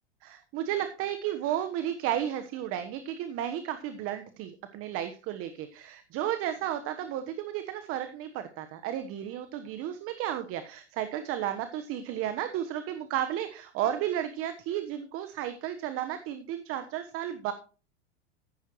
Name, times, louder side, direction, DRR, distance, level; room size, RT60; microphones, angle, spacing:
voice 1, 0.2-17.5, right 11 dB, 40° right, 9 dB, 1.3 m, -33 dB
14.5 x 10.5 x 3.1 m, 0.36 s
hypercardioid pair, 100°, 33 cm